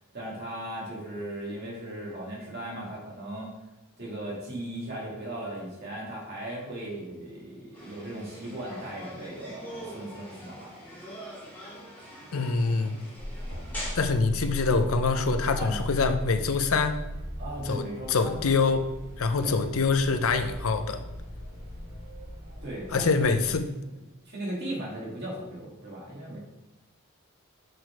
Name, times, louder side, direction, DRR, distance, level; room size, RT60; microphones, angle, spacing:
voice 1, 0.1-3.5 4.0-10.7 15.6-15.8 17.4-18.4 19.4-19.6 22.6-23.4 23.8-23.9 24.3-26.4, right 1 dB, 50° right, -4 dB, 2.4 m, -37 dB
sound 1, 7.7-13.9, equal, 10° left, 2.5 m, -43 dB
voice 2, 12.3-13.0 14.0-17.0 17.7-18.9 19.2-21.0 22.9-23.7, left 4 dB, 70° left, 8 dB, 0.6 m, -25 dB
sound 2, 13.2-23.6, equal, 70° right, 2.5 m, -38 dB
6.3 x 4.6 x 4.7 m, 0.97 s
head